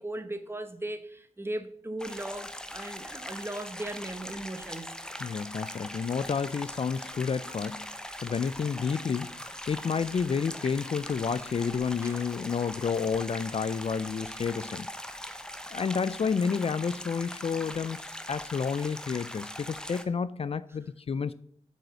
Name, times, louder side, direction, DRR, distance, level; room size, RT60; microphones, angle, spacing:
voice 1, 0.0-5.0 11.0-11.1 12.0-12.6, right 1 dB, 20° right, 1.0 m, -38 dB
sound 1, 2.0-20.0, equal, 5° left, 0.8 m, -41 dB
voice 2, 5.2-7.9 8.2-9.3 9.7-14.9 15.7-21.3, left 6 dB, 55° left, 0.4 m, -30 dB
7.3 x 5.4 x 6.3 m
wide cardioid pair, 65°, 12 cm